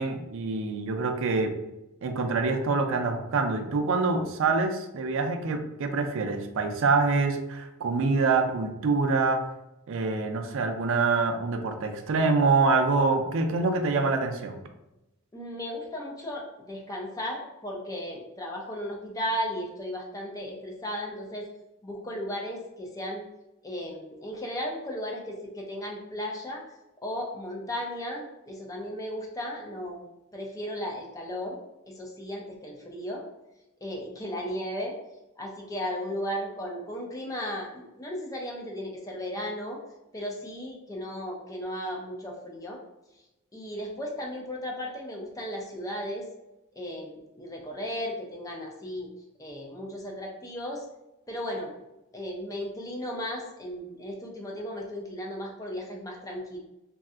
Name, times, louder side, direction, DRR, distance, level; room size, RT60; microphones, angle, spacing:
voice 1, 0.0-1.6 2.0-9.4 9.9-14.6, right 4 dB, 60° right, 5 dB, 0.4 m, -25 dB
voice 2, 15.3-21.5 21.8-23.2 23.6-26.6 27.0-31.6 31.9-33.2 33.8-34.9 35.4-39.8 40.1-42.8 43.5-46.2 46.8-49.1 49.4-50.9 51.3-51.7 52.1-56.6, equal, 15° left, 0 dB, 0.5 m, -35 dB
3.1 x 2.7 x 2.4 m, 0.93 s
head